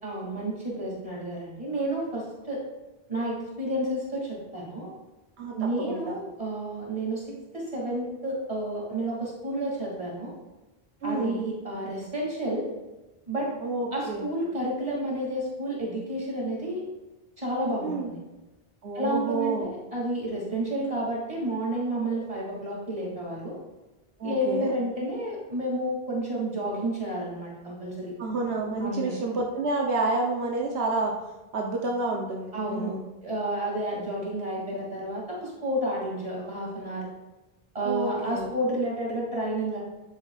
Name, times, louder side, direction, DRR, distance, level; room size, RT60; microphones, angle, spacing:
voice 1, 0.0-2.6 3.1-4.9 5.5-7.3 7.5-10.3 11.0-12.6 13.3-13.5 13.9-16.8 17.4-18.2 18.9-23.6 24.2-28.1 28.8-29.2 32.5-32.9 33.2-37.1 37.7-39.8, right 1 dB, 35° right, -4 dB, 2.8 m, -30 dB
voice 2, 11.0-11.4 13.6-14.2 17.8-18.1 18.8-19.7 24.2-24.7 28.2-31.1 31.5-33.1 37.8-38.5, right 3 dB, 85° right, 0 dB, 1.1 m, -29 dB
10.0 x 8.4 x 2.4 m, 1.1 s
omnidirectional pair, 1.0 m